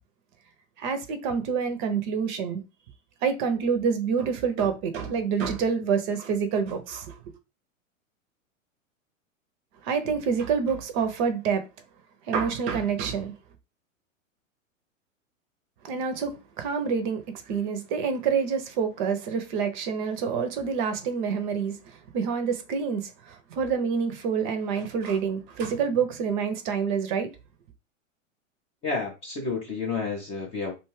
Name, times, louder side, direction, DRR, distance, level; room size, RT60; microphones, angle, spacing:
voice 1, 0.8-2.6 3.2-7.1 9.8-11.6 12.3-13.3 15.8-27.3, right 6 dB, 35° right, 0.5 m, -27 dB
voice 2, 28.8-30.7, left 4 dB, 15° left, 0.4 m, -30 dB
2.6 x 2.2 x 3.1 m
hypercardioid pair, 105°, 41 cm